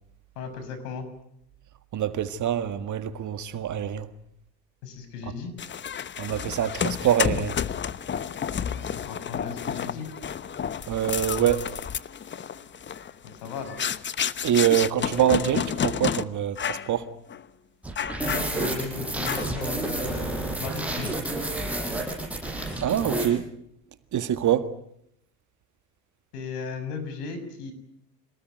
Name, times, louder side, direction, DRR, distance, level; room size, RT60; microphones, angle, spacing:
voice 1, 0.3-1.1 4.8-5.5 8.6-10.1 13.2-13.9 18.2-21.2 26.3-27.7, left 5 dB, 70° left, 6.7 m, -36 dB
voice 2, 1.9-4.1 6.2-7.6 10.9-11.6 14.4-17.1 22.8-23.5 24.1-24.7, right 10 dB, 35° right, 1.8 m, -25 dB
sound 1, 5.6-16.2 16.6-16.9 17.3-17.4 18.0-18.8 19.2-19.7, left 8 dB, 20° left, 1.0 m, -30 dB
sound 2, 17.8-23.3, right 2 dB, 5° right, 7.9 m, -30 dB
27.5 x 19.0 x 9.4 m
hypercardioid pair, 90°, 49 cm